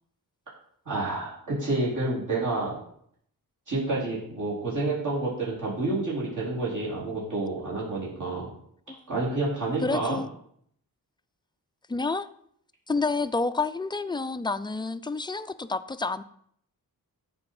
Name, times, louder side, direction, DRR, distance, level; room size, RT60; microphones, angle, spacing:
voice 1, 0.9-2.8 3.7-8.5 9.1-10.2, right 2 dB, 55° right, -6 dB, 4.3 m, -29 dB
voice 2, 9.8-10.3 11.9-12.3 12.9-16.2, left 3 dB, 15° left, 13 dB, 0.4 m, -29 dB
13.5 x 5.3 x 4.8 m, 0.65 s
wide cardioid pair, 135°, 36 cm